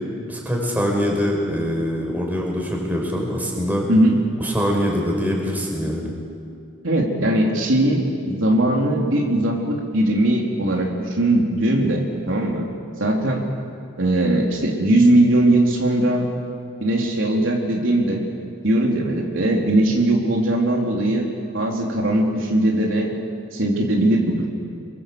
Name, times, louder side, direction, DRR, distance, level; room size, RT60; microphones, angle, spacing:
voice 1, 0.3-3.9 4.4-6.1, equal, 10° right, -1 dB, 5.1 m, -23 dB
voice 2, 6.8-12.7 13.0-13.4 14.0-16.3 16.8-18.2 18.6-21.3 21.5-23.1 23.5-24.5, right 1 dB, 65° right, -1 dB, 3.6 m, -19 dB
29.5 x 23.5 x 7.9 m, 2.3 s
head